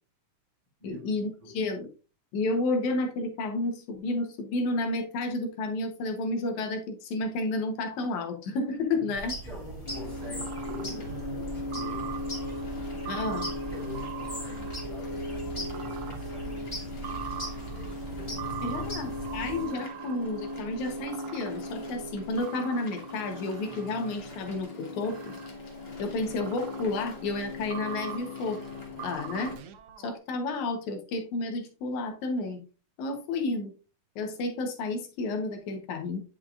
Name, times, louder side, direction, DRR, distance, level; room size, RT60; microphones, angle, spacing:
voice 1, 0.8-1.9 2.3-9.3 13.1-13.5 18.6-25.3 26.0-28.6 29.0-29.6 30.0-32.6 33.0-33.7 34.2-36.2, left 2 dB, 75° left, 2.3 m, -31 dB
voice 2, 8.9-12.2 13.7-17.4 17.7-18.7, left 1 dB, 35° right, 3.0 m, -45 dB
sound 1, 9.1-19.6, right 1 dB, 10° left, 2.0 m, -39 dB
sound 2, 9.8-29.6, left 2 dB, 45° left, 0.7 m, -39 dB
sound 3, 10.2-24.6 25.0-30.2, right 9 dB, 80° right, 1.3 m, -43 dB
9.7 x 5.3 x 2.4 m
omnidirectional pair, 3.5 m